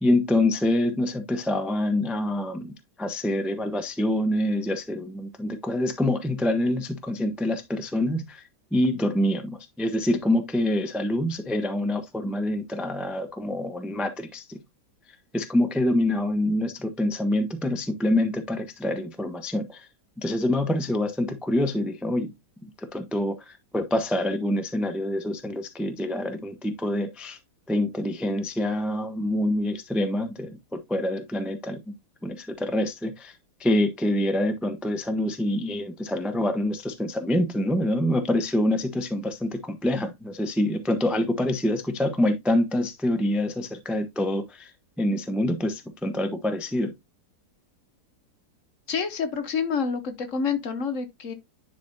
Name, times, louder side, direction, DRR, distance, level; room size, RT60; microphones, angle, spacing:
voice 1, 0.0-2.7 3.0-8.4 8.7-14.6 15.3-19.9 20.2-22.3 22.6-27.4 27.7-30.6 30.9-31.8 32.2-33.3 33.6-44.7 45.0-46.9, left 1 dB, ahead, 0.4 m, -26 dB
voice 2, 48.9-51.3, left 6 dB, 50° left, 1.2 m, -28 dB
10.5 x 4.2 x 2.6 m
omnidirectional pair, 1.8 m